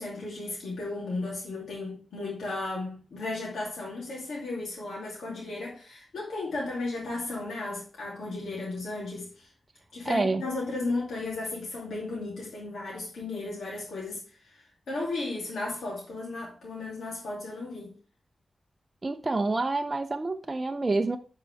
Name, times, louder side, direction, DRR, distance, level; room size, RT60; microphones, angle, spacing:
voice 1, 0.0-9.5 9.9-14.6 14.9-17.9, left 2 dB, 90° left, 2.5 m, -35 dB
voice 2, 10.0-10.4 19.0-21.2, right 3 dB, 25° right, 0.5 m, -27 dB
10.5 x 4.7 x 3.4 m
wide cardioid pair, 135°, 0 cm